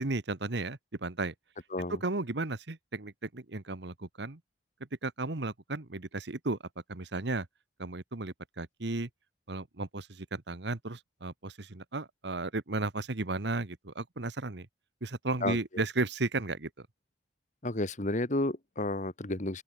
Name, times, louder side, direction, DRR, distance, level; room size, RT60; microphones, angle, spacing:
voice 1, 0.0-1.3 1.9-4.4 5.0-6.6 6.9-7.5 7.8-9.1 9.5-14.7 15.0-16.9, right 2 dB, 65° right, 1.4 m, -34 dB
voice 2, 15.4-15.8 17.6-19.6, left 2 dB, 40° left, 2.0 m, -32 dB
open air
head